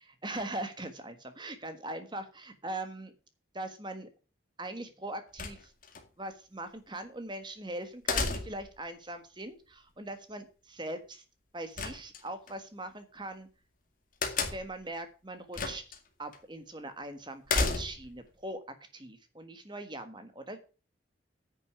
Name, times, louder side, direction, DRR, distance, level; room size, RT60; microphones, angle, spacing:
voice 1, 0.2-3.1 3.5-4.1 4.6-5.7 6.2-11.2 11.5-13.5 14.5-15.8 16.2-18.6 18.9-20.6, right 1 dB, 25° right, 9 dB, 1.5 m, -41 dB
sound 1, 5.4-6.0 8.1-8.8 11.8-12.5 14.2-14.8 15.5-16.0 16.3-16.4 17.5-18.2, left 4 dB, 45° left, 2.2 m, -32 dB
9.9 x 6.7 x 6.8 m, 0.34 s
head